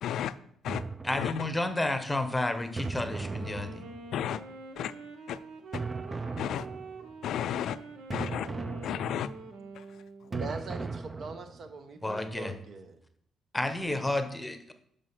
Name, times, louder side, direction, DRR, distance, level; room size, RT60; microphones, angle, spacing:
voice 1, 0.0-0.4 0.6-0.8 1.1-1.5 4.1-4.4 4.8-4.9 5.3-5.4 5.7-5.8 6.4-6.7 7.2-7.8 8.1-8.5 8.8-9.3 9.7-9.9, left 10 dB, 75° left, 0.3 m, -33 dB
sound 1, 0.7-1.7 2.8-4.4 5.7-7.1 8.1-9.5 10.3-11.7, right 3 dB, 25° right, 0.4 m, -38 dB
voice 2, 1.0-3.8 12.0-12.6 13.5-14.7, left 2 dB, 10° left, 0.9 m, -31 dB
Wind instrument woodwind instrument, 2.9-10.5, right 3 dB, 90° right, 0.9 m, -46 dB
voice 3, 10.3-13.0, right 4 dB, 55° right, 0.9 m, -41 dB
6.3 x 5.2 x 5.6 m
cardioid pair, 90°, 0 cm